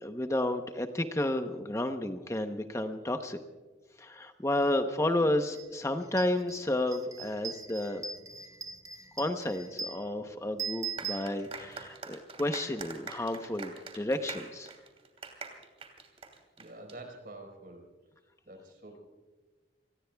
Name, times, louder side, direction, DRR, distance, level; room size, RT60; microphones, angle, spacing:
voice 1, 0.0-3.4 4.0-8.0 9.2-14.7, left 1 dB, 15° left, 6 dB, 0.8 m, -31 dB
sound 1, 5.5-5.7 6.0-11.9, right 5 dB, 20° right, 0.8 m, -41 dB
sound 2, 11.0-16.9, right 4 dB, 35° right, 2.8 m, -44 dB
voice 2, 16.6-18.0 18.5-19.0, right 2 dB, 55° right, 4 dB, 4.5 m, -47 dB
30.0 x 20.0 x 2.3 m, 1.3 s
head